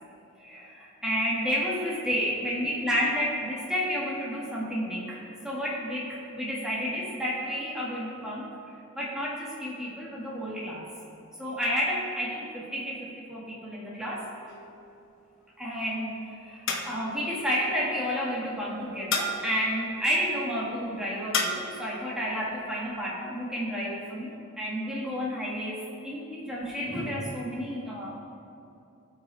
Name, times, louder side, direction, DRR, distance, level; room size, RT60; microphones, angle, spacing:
voice 1, 0.4-8.5 8.9-10.9 11.4-14.3 15.6-28.1, equal, 5° right, -6 dB, 1.6 m, -31 dB
sound 1, 14.5-15.0 16.7-17.2 19.1-19.6 21.3-21.8, left 3 dB, 55° left, 0.9 m, -31 dB
17.5 x 6.0 x 3.3 m, 2.7 s
head